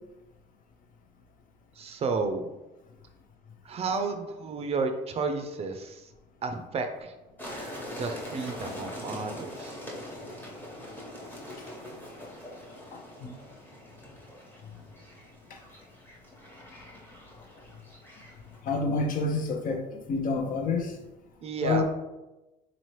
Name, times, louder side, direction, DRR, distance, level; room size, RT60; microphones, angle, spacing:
voice 1, 1.7-2.5 3.6-6.1 6.4-7.1 8.0-9.9 21.4-21.8, right 4 dB, 35° right, 6 dB, 0.4 m, -32 dB
sound 1, 7.4-18.6, left 1 dB, 10° left, 1.1 m, -43 dB
voice 2, 12.9-13.3 15.5-15.6 18.6-21.0 21.6-21.8, left 3 dB, 50° left, 4 dB, 0.7 m, -28 dB
4.0 x 2.9 x 3.1 m, 1.0 s
cardioid pair, 105°, 17 cm